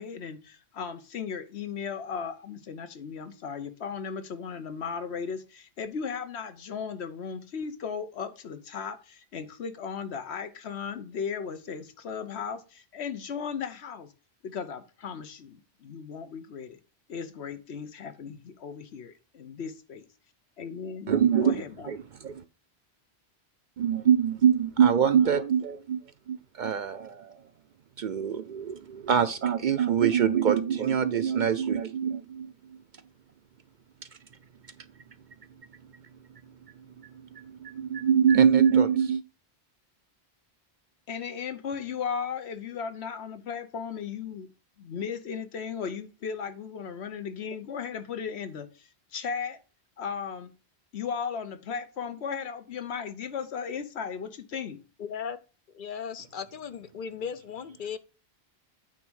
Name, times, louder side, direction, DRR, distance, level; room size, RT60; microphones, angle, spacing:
voice 1, 0.0-14.1 14.4-16.8 17.1-20.1 20.6-21.1 21.4-21.9 41.1-44.5 44.8-49.6 50.0-50.5 50.9-54.8, left 6 dB, 80° left, 1.1 m, -36 dB
voice 2, 21.1-21.6 21.9-22.4 23.8-27.4 28.0-32.8 37.0-39.2, right 8 dB, 55° right, 0.6 m, -24 dB
voice 3, 55.0-55.4 55.7-58.0, left 7 dB, 60° left, 0.7 m, -36 dB
9.0 x 3.6 x 6.2 m
omnidirectional pair, 1.1 m